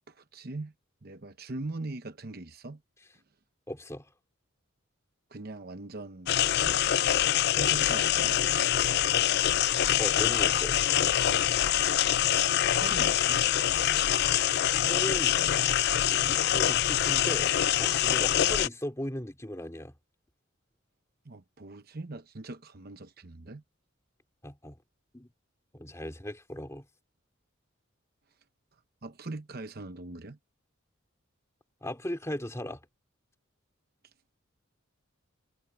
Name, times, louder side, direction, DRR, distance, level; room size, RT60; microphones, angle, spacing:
voice 1, 0.1-0.7 1.0-2.8 5.3-6.3 7.5-8.4 12.7-13.5 18.2-18.3 21.2-23.6 29.0-30.4, right 2 dB, 50° right, 0.9 m, -41 dB
voice 2, 3.7-4.1 10.0-10.8 14.0-14.5 14.8-15.4 16.2-19.9 24.4-24.8 25.1-25.3 25.7-26.9 31.8-32.8, left 1 dB, 15° left, 2.4 m, -37 dB
sound 1, 6.3-18.7, left 11 dB, 50° left, 0.4 m, -25 dB
head